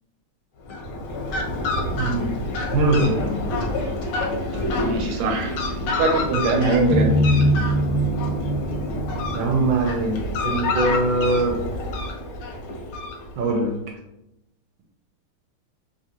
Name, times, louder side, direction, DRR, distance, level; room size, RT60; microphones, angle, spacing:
Fowl, 0.6-13.6, left 2 dB, 70° left, 1.1 m, -28 dB
voice 1, 1.9-2.3 2.7-3.4 9.3-11.6 13.4-14.0, right 2 dB, 70° right, 1 dB, 1.3 m, -22 dB
voice 2, 4.8-5.6 5.9-7.1, right 3 dB, 90° right, 3 dB, 1.5 m, -22 dB
sound 1, 6.9-10.1, equal, 85° left, 1.5 m, -22 dB
3.6 x 2.7 x 2.8 m, 0.86 s
omnidirectional pair, 2.3 m